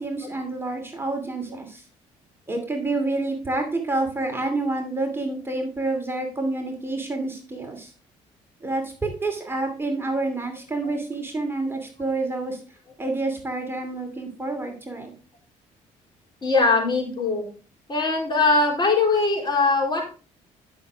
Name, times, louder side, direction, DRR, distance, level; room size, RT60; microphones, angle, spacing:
voice 1, 0.0-1.8 2.5-7.9 8.6-12.6 13.0-15.1, right 2 dB, 15° right, 3 dB, 2.6 m, -28 dB
voice 2, 16.4-17.5 17.9-20.0, left 3 dB, 30° left, 0 dB, 3.7 m, -21 dB
10.5 x 6.4 x 3.6 m, 0.36 s
supercardioid pair, 80°, 14 cm